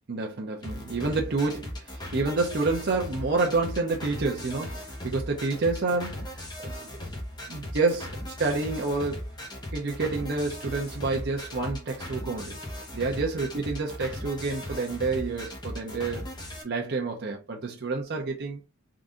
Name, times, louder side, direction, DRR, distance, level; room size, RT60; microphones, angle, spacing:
voice 1, 0.1-6.7 7.5-9.3 9.7-12.6 12.9-16.3 16.6-18.6, right 3 dB, 50° right, 0.6 m, -29 dB
sound 1, 0.6-16.6, left 1 dB, 20° left, 1.1 m, -38 dB
3.8 x 2.6 x 3.6 m
head